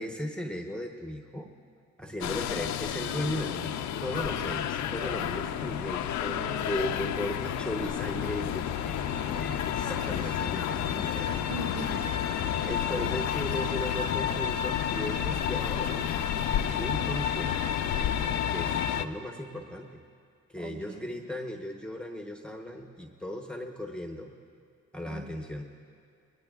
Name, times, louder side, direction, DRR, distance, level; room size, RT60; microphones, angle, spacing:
voice 1, 0.0-1.5 2.0-9.0 9.3-11.4 12.6-16.2 16.5-17.8 18.5-20.0 20.5-24.3 24.9-25.6, left 1 dB, 5° left, 2 dB, 0.9 m, -36 dB
sound 1, 2.2-19.1, left 9 dB, 70° left, 0.6 m, -30 dB
voice 2, 6.2-6.9 11.5-12.6 12.9-13.3 20.6-21.1 25.0-25.4, right 2 dB, 60° right, -1 dB, 2.4 m, -42 dB
20.0 x 19.5 x 2.4 m, 2.3 s
cardioid pair, 90°, 30 cm